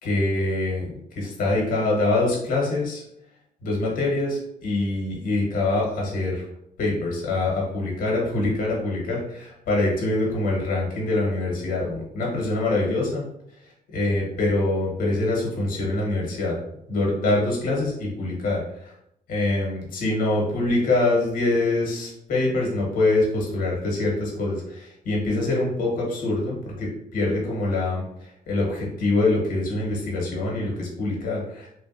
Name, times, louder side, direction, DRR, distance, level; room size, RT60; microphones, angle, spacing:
voice 1, 0.0-3.0 3.6-6.4 6.8-13.2 13.6-16.6 16.9-18.9 19.3-31.7, left 2 dB, 70° left, -2 dB, 1.3 m, -24 dB
3.2 x 2.5 x 2.6 m, 0.74 s
cardioid pair, 90°, 15 cm